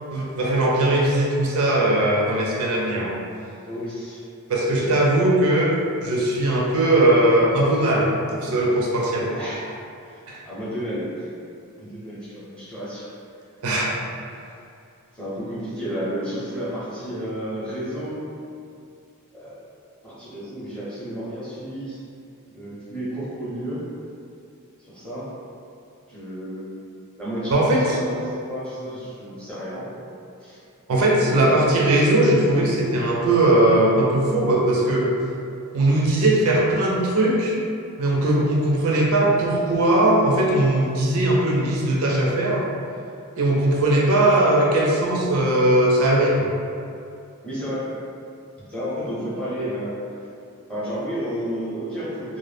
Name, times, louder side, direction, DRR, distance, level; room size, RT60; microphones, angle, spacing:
voice 1, 0.1-3.1 4.5-5.7 6.0-9.3 10.3-10.4 13.6-13.9 27.5-27.8 30.9-35.1 35.7-37.6 38.0-42.6 43.4-46.5, right 1 dB, 65° right, -3 dB, 0.4 m, -19 dB
voice 2, 3.6-4.2 4.7-5.1 9.3-9.7 10.0-11.3 11.8-13.1 15.1-18.3 19.3-19.6 20.0-22.0 22.5-23.9 24.8-25.3 26.1-26.7 27.2-29.9 30.4-30.6 47.4-47.9 48.7-50.0 50.7-52.4, equal, 5° left, -11 dB, 0.7 m, -31 dB
2.1 x 2.0 x 3.2 m, 2.5 s
head